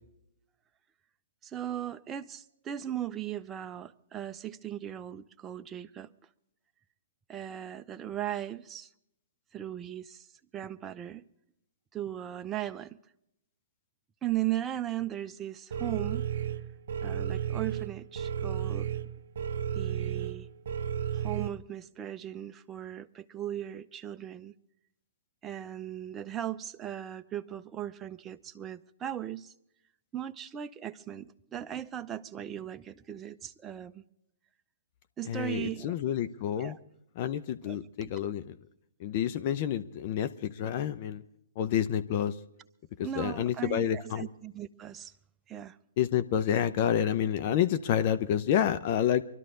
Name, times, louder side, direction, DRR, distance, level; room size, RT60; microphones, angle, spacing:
voice 1, 1.4-6.1 7.3-8.9 9.5-10.3 10.5-11.2 11.9-13.0 14.2-16.3 17.0-18.9 19.7-20.5 21.1-24.5 25.4-29.5 30.1-34.0 35.2-35.9 36.6-36.8 37.6-38.1 43.0-45.1 45.5-45.8, right 12 dB, 20° right, 0.6 m, -37 dB
sound 1, 15.7-21.5, right 8 dB, 60° right, 1.0 m, -33 dB
voice 2, 35.3-36.7 37.2-38.5 39.0-41.2 41.6-42.3 43.2-44.3 46.0-49.2, left 10 dB, 45° left, 0.7 m, -29 dB
24.0 x 12.5 x 3.9 m
figure-of-eight pair, 120°, 0 cm